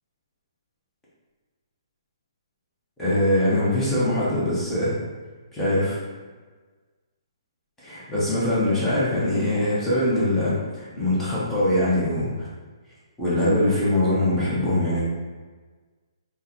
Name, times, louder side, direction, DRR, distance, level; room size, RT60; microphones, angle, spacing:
voice 1, 3.0-4.9 5.5-6.0 7.8-12.5 13.2-15.0, left 1 dB, 10° left, -10 dB, 0.9 m, -22 dB
3.5 x 2.2 x 2.8 m, 1.4 s
figure-of-eight pair, 130°, 3 cm